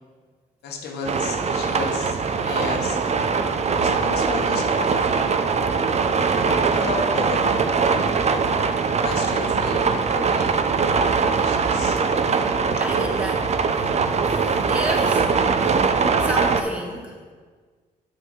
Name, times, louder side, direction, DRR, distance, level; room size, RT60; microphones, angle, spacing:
voice 1, 0.6-3.0 3.7-5.4 6.4-8.1 9.0-12.0, left 4 dB, 90° left, 1 dB, 0.9 m, -34 dB
sound 1, 1.0-16.6, right 5 dB, 40° right, 0.6 m, -21 dB
voice 2, 12.8-14.0 14.3-15.3 16.2-17.3, equal, 10° right, -1 dB, 1.6 m, -31 dB
8.7 x 6.5 x 3.2 m, 1.5 s
cardioid pair, 65°, 16 cm